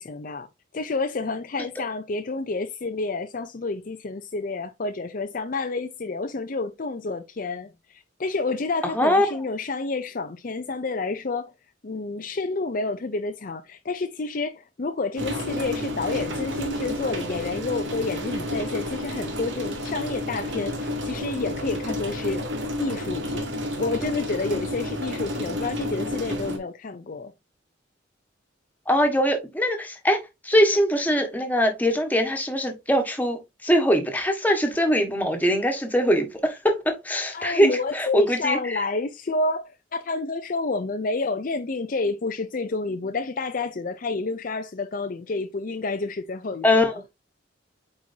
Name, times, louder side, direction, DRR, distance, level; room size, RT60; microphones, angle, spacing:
voice 1, 0.0-11.5 11.8-22.4 22.8-23.5 23.8-27.3 37.3-46.9, left 3 dB, 45° left, 0.5 m, -29 dB
voice 2, 8.9-9.3 28.9-30.2 30.4-38.8 46.6-46.9, equal, 10° left, 1.5 m, -22 dB
sound 1, 15.2-26.6, left 1 dB, 75° right, 2.3 m, -30 dB
8.6 x 4.4 x 2.7 m
head